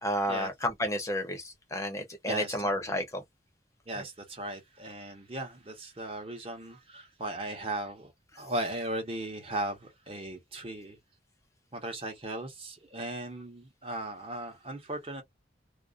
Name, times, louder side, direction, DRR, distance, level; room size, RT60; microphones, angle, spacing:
voice 1, 0.0-3.2 3.9-4.1 8.3-8.4, equal, 15° left, 0.7 m, -31 dB
voice 2, 3.9-8.1 8.4-11.0 11.7-15.2, right 1 dB, 30° right, 0.9 m, -37 dB
2.4 x 2.0 x 2.4 m
head